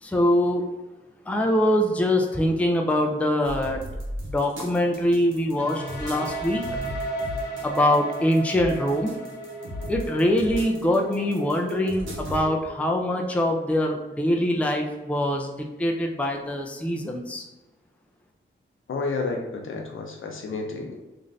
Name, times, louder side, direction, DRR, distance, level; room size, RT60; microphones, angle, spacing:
voice 1, 0.0-0.6 1.3-3.8 4.3-6.6 7.6-9.1 9.9-17.4, left 1 dB, 5° left, 2 dB, 0.4 m, -23 dB
sound 1, 3.4-12.4, equal, 70° right, 0.9 m, -37 dB
sound 2, 5.6-13.3, right 1 dB, 45° left, 1.0 m, -35 dB
voice 2, 18.9-21.0, left 3 dB, 75° left, 2 dB, 0.6 m, -30 dB
3.1 x 2.5 x 2.5 m, 1.1 s
cardioid pair, 70°, 21 cm